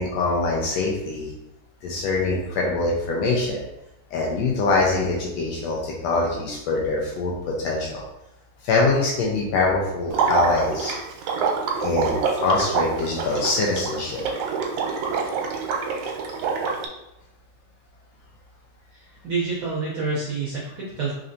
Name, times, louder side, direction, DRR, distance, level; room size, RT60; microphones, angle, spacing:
voice 1, 0.0-1.3 1.8-3.6 4.1-8.0 8.6-10.9 11.8-14.2, left 3 dB, 80° left, -2 dB, 1.6 m, -24 dB
Water / Liquid, 10.1-16.9, right 6 dB, 90° right, 2.1 m, -26 dB
voice 2, 18.9-21.1, right 4 dB, 75° right, -6 dB, 1.2 m, -28 dB
4.3 x 3.8 x 2.6 m, 0.88 s
omnidirectional pair, 3.4 m